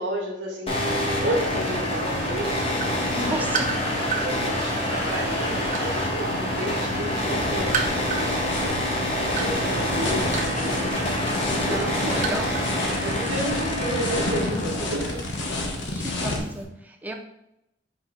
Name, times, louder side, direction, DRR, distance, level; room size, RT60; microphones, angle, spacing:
voice 1, 0.0-3.5 4.0-12.4 13.0-15.3 15.6-15.8, right 1 dB, 70° right, -2 dB, 1.3 m, -32 dB
sound 1, 0.7-16.6, left 1 dB, 30° left, 1.4 m, -27 dB
sound 2, 2.8-4.3 5.0-6.6 6.9-12.8 13.0-13.3, right 6 dB, 40° right, 0.9 m, -31 dB
voice 2, 3.2-3.7 11.6-12.6 15.9-17.1, right 1 dB, 10° right, 3 dB, 0.7 m, -33 dB
sound 3, 7.3-16.4, left 2 dB, 70° left, 1.2 m, -31 dB
5.2 x 5.2 x 3.9 m, 0.84 s
head